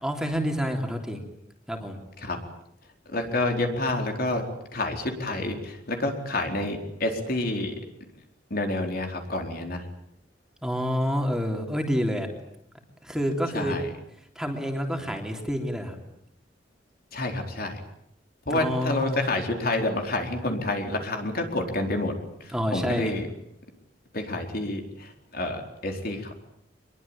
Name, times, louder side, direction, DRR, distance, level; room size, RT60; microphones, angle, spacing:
voice 1, 0.0-1.2 1.7-2.0 10.6-12.3 13.0-13.8 14.3-16.0 18.5-19.4 22.5-23.1, equal, 5° right, 2 dB, 3.4 m, -28 dB
voice 2, 3.1-4.4 4.7-7.7 8.5-9.9 13.5-13.9 17.1-17.8 18.5-22.1 22.4-23.3 24.1-26.3, left 2 dB, 55° left, 3 dB, 4.4 m, -28 dB
24.5 x 22.5 x 8.9 m, 0.77 s
head